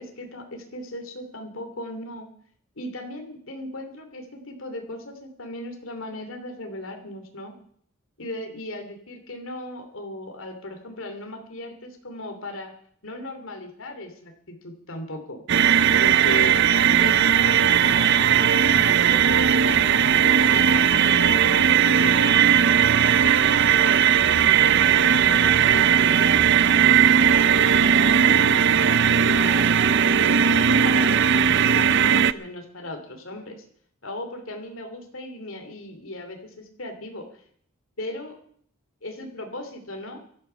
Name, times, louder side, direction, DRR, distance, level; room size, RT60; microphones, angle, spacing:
voice 1, 0.0-2.3 2.8-7.5 8.2-12.7 13.0-15.4 16.0-16.6 17.0-20.7 21.0-22.5 23.2-30.3 30.7-33.6 34.0-37.2 38.0-38.4 39.0-40.2, left 1 dB, 65° left, 5 dB, 2.9 m, -37 dB
sound 1, 15.5-32.3, right 8 dB, 55° right, 0.5 m, -18 dB
sound 2, 17.8-30.8, equal, 5° left, 7.0 m, -43 dB
16.5 x 13.5 x 5.7 m, 0.62 s
head